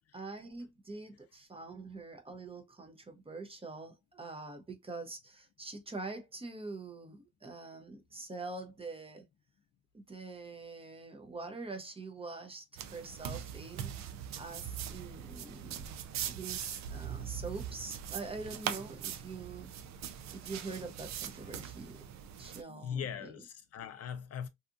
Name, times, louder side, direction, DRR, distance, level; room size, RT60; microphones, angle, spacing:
voice 1, 0.1-9.3 9.9-15.9 16.2-19.7 20.3-22.0 22.4-23.4, right 3 dB, 20° right, 0.6 m, -44 dB
sound 1, 12.8-22.6, right 9 dB, 65° right, 0.5 m, -41 dB
voice 2, 22.7-24.5, left 8 dB, 55° left, 0.5 m, -40 dB
2.7 x 2.4 x 2.4 m
cardioid pair, 90°, 30 cm